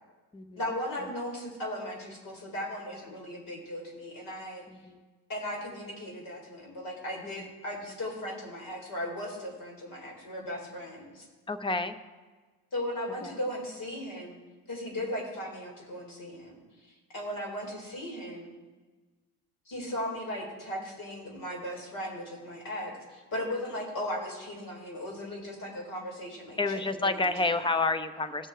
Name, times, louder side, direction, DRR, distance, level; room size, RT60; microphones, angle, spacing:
voice 1, 0.6-4.7 5.3-11.3 12.7-14.4 14.7-16.6 16.9-18.5 19.7-27.7, left 1 dB, 45° left, 0 dB, 3.7 m, -37 dB
voice 2, 4.7-5.0 11.5-11.9 13.2-13.3 26.6-28.5, left 3 dB, 10° left, 10 dB, 0.8 m, -29 dB
16.5 x 6.4 x 4.5 m, 1.3 s
hypercardioid pair, 60°, 44 cm